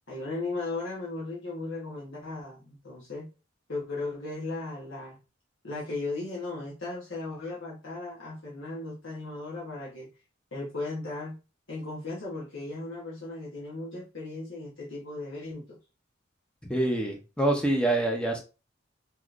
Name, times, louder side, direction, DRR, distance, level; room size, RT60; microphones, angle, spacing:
voice 1, 0.1-3.3 3.7-5.2 5.6-10.1 10.5-11.4 11.7-15.8, left 2 dB, 70° left, -6 dB, 1.1 m, -36 dB
voice 2, 16.7-18.4, right 1 dB, 5° left, 1 dB, 0.6 m, -26 dB
3.7 x 2.9 x 2.4 m, 0.31 s
head